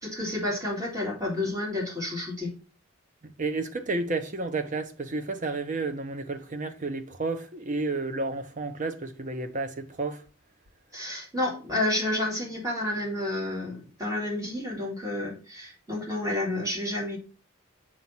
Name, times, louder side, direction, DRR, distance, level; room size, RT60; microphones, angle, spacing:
voice 1, 0.0-2.5 10.9-17.2, left 1 dB, 15° right, 2.5 m, -30 dB
voice 2, 3.2-10.2, right 3 dB, 40° right, 0.8 m, -31 dB
6.3 x 3.0 x 5.6 m
head